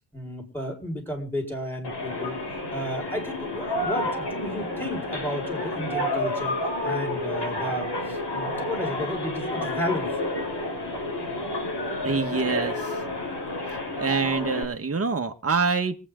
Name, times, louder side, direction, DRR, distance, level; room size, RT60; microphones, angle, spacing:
voice 1, 0.1-2.4 2.7-6.6 6.8-10.1, left 1 dB, 5° left, 2 dB, 4.7 m, -33 dB
sound 1, 1.8-14.6, left 1 dB, 75° left, 6.4 m, -30 dB
voice 2, 12.0-12.9 14.0-16.1, right 4 dB, 35° right, 5 dB, 1.6 m, -26 dB
25.5 x 8.9 x 3.8 m, 0.34 s
wide cardioid pair, 105°, 41 cm